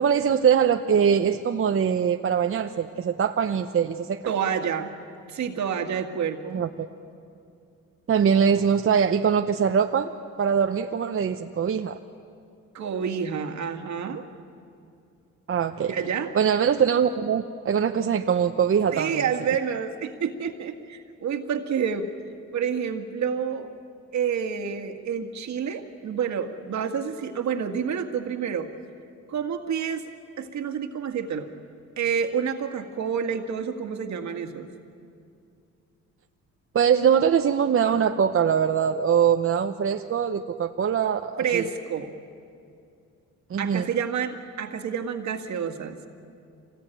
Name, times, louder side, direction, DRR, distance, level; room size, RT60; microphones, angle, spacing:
voice 1, 0.0-4.3 6.5-6.9 8.1-10.1 10.4-12.0 15.5-15.9 16.3-19.3 36.7-41.6 43.5-43.9, right 7 dB, 45° right, 5 dB, 0.9 m, -22 dB
voice 2, 4.3-4.9 5.3-6.6 12.7-14.3 15.9-16.4 18.9-22.1 22.5-23.7 24.1-28.7 29.3-30.1 30.4-31.5 32.0-34.7 41.4-42.1 43.6-46.0, right 7 dB, 65° right, 5 dB, 2.0 m, -28 dB
26.0 x 19.0 x 9.2 m, 2.5 s
cardioid pair, 90°, 30 cm